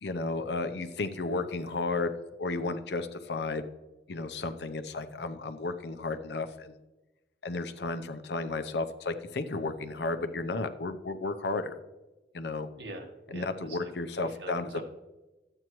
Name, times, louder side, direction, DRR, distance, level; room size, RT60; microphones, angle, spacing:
voice 1, 0.0-2.1 2.4-3.6 4.1-6.7 7.4-11.8 12.3-12.7 13.3-14.8, left 3 dB, 65° left, 9 dB, 0.7 m, -33 dB
voice 2, 12.8-13.9 14.4-14.8, right 1 dB, 90° right, 3 dB, 1.4 m, -43 dB
13.0 x 8.7 x 3.1 m, 1.1 s
head